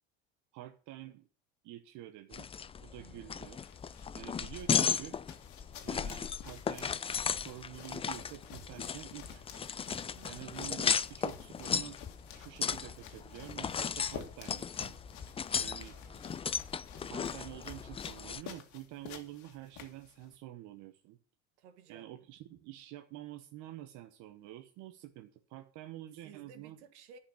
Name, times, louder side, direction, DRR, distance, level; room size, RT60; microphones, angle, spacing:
voice 1, 0.5-1.3 1.6-2.5 2.8-3.6 4.1-5.2 5.8-7.0 7.3-9.5 10.2-12.0 12.3-14.7 15.6-16.0 17.1-21.2 21.9-26.8, right 14 dB, 60° right, 1.0 m, -48 dB
sound 1, 2.3-18.4, left 6 dB, 15° left, 0.4 m, -36 dB
voice 2, 3.0-3.4 10.1-10.5 15.8-16.5 21.6-22.1 26.2-27.2, right 7 dB, 85° right, 1.9 m, -57 dB
sound 2, 3.4-20.4, left 7 dB, 55° left, 2.0 m, -52 dB
11.0 x 5.5 x 8.4 m
supercardioid pair, 105°, 34 cm